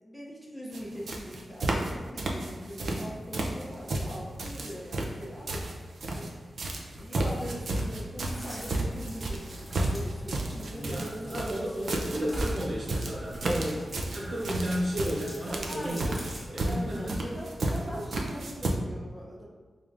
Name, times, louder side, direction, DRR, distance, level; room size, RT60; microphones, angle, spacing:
voice 1, 0.0-5.6 6.1-6.3 7.0-12.1 13.4-13.8 15.5-16.3 16.6-19.5, equal, 5° left, -5 dB, 0.6 m, -41 dB
sound 1, 0.7-0.8 1.1-3.1 3.3-6.3 6.6-18.7, right 2 dB, 70° right, 0.5 m, -32 dB
sound 2, 8.2-16.4, right 1 dB, 30° right, 1.2 m, -43 dB
voice 2, 10.7-13.7 14.1-16.1 16.5-17.1, equal, 55° right, -6 dB, 1.0 m, -33 dB
3.5 x 3.4 x 2.5 m, 1.4 s
wide cardioid pair, 115°, 0 cm